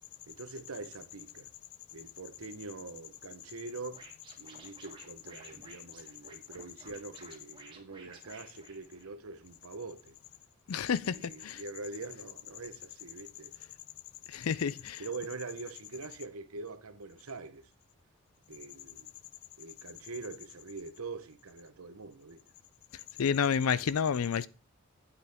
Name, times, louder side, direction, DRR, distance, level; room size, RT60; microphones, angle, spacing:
voice 1, 0.3-1.5 1.9-4.1 4.4-10.2 11.0-13.5 15.0-17.7 18.5-19.1 19.6-22.4, right 4 dB, 90° right, 1.0 m, -44 dB
Scratching (performance technique), 3.9-9.4, right 3 dB, 20° right, 1.7 m, -55 dB
voice 2, 10.7-11.6 14.3-15.0 23.2-24.5, left 7 dB, 85° left, 0.5 m, -30 dB
8.3 x 8.2 x 3.5 m
head